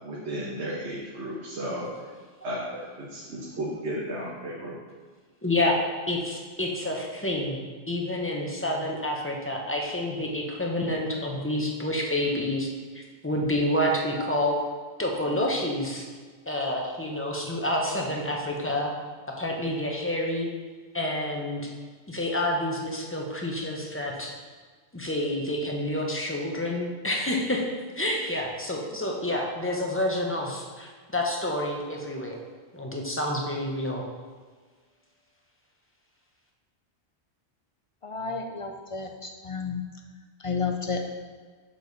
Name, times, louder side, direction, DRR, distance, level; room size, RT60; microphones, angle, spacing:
voice 1, 0.0-1.9 2.4-4.7, right 1 dB, 85° right, -6 dB, 1.4 m, -34 dB
voice 2, 5.4-5.8 6.1-7.6 7.9-12.7 12.9-14.5 15.0-16.0 16.5-18.9 19.4-20.5 20.9-21.7 22.1-24.3 24.9-27.6 28.0-32.4 32.7-34.0, left 1 dB, 15° left, -1 dB, 0.8 m, -28 dB
voice 3, 38.0-39.8 40.4-41.1, left 4 dB, 50° left, 4 dB, 0.4 m, -31 dB
7.0 x 4.8 x 4.0 m, 1.5 s
omnidirectional pair, 1.1 m